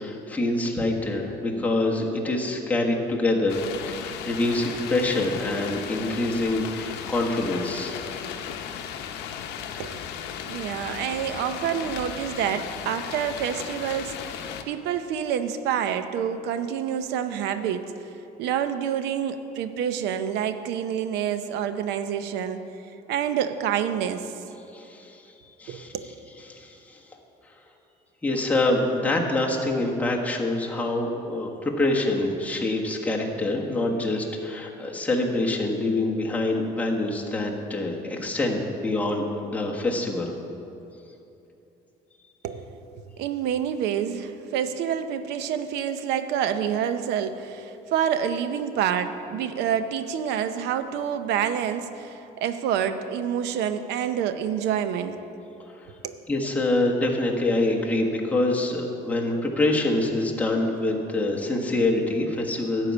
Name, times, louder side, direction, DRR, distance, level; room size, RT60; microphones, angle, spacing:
voice 1, 0.0-3.6 3.9-8.1 24.7-25.2 25.6-25.9 26.5-27.2 28.2-40.3 55.7-55.9 56.3-62.9, left 2 dB, 10° left, -2 dB, 1.4 m, -25 dB
sound 1, 3.5-14.6, left 8 dB, 90° left, 0.7 m, -36 dB
voice 2, 10.4-18.1 18.4-22.7 23.1-24.3 25.7-26.1 42.4-42.8 43.2-55.2 56.0-56.2, right 8 dB, 85° right, 10 dB, 0.7 m, -28 dB
12.0 x 4.8 x 8.3 m, 2.9 s
cardioid pair, 110°, 17 cm